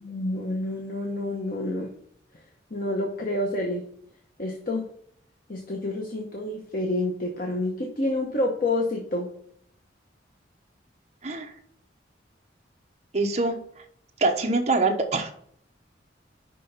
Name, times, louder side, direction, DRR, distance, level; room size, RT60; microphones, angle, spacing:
voice 1, 0.0-1.9 2.7-3.8 4.4-4.9 5.5-9.3, left 1 dB, 50° left, 1 dB, 0.9 m, -28 dB
voice 2, 13.1-13.6 14.2-15.3, right 3 dB, 35° right, 4 dB, 0.9 m, -24 dB
5.5 x 5.4 x 5.7 m, 0.64 s
head